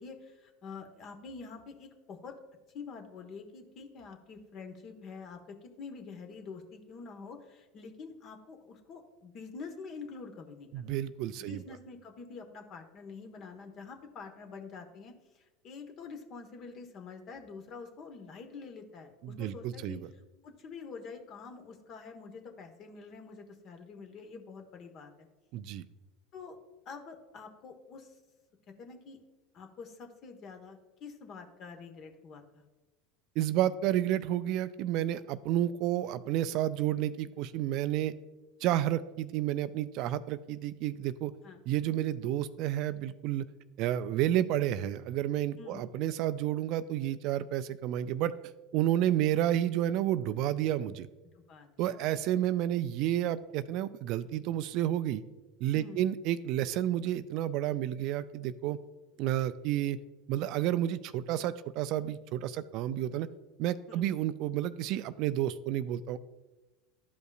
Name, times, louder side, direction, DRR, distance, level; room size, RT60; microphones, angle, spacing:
voice 1, 0.0-2.4 2.7-11.0 11.4-20.0 20.4-25.1 26.3-26.6 26.8-28.2 28.8-29.2 29.5-32.6 41.4-41.6 45.6-45.8 51.3-52.2 55.7-56.0 63.9-64.1, left 5 dB, 45° left, 5 dB, 1.1 m, -47 dB
voice 2, 10.7-11.6 19.2-20.0 25.5-25.8 33.4-38.1 38.6-41.3 41.7-43.5 43.8-48.3 48.7-51.1 51.8-55.2 55.6-58.8 59.2-60.0 60.3-63.3 63.6-66.2, right 12 dB, 55° right, 14 dB, 0.3 m, -30 dB
12.0 x 5.2 x 2.4 m, 1.1 s
hypercardioid pair, 85°, 0 cm